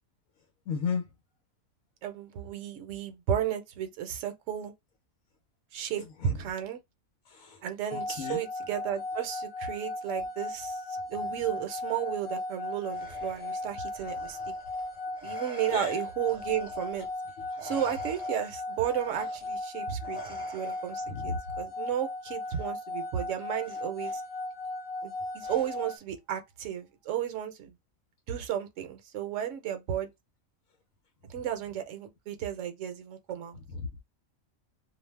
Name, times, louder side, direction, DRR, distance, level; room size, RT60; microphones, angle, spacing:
voice 1, 0.7-1.1 6.0-6.4 7.3-8.4 15.7-16.0 21.1-21.4 33.7-33.9, left 5 dB, 80° left, 1.0 m, -35 dB
voice 2, 2.0-4.7 5.7-6.0 6.4-6.8 7.6-10.8 11.1-14.4 15.2-17.1 17.6-24.2 25.0-27.7 28.3-30.1 31.3-33.6, right 10 dB, 70° right, 0.9 m, -33 dB
sound 1, 7.9-26.0, left 2 dB, 50° left, 0.8 m, -37 dB
Respiratory sounds, 12.8-17.2 17.5-21.2 22.4-22.6 23.6-24.2 25.4-26.0, right 4 dB, 5° right, 0.7 m, -49 dB
2.5 x 2.0 x 3.2 m
omnidirectional pair, 1.4 m